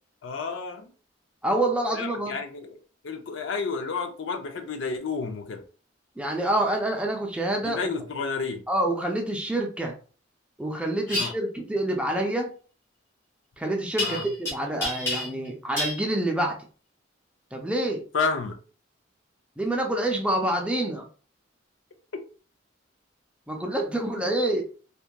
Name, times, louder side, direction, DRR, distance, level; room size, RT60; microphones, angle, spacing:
voice 1, 0.2-0.9 1.9-2.8 3.0-5.6 7.6-8.6 11.1-11.3 14.0-14.2 18.1-18.6 24.1-24.4, left 4 dB, 70° left, 0.4 m, -31 dB
voice 2, 1.4-2.4 6.2-7.8 8.7-10.0 10.6-12.5 13.6-16.6 17.5-18.0 19.6-21.1 23.5-24.6, right 1 dB, 5° right, 0.4 m, -27 dB
sound 1, 11.1-11.3 14.0-14.5 14.8-15.5 15.8-16.0, left 2 dB, 15° left, 1.3 m, -28 dB
2.7 x 2.2 x 2.2 m
head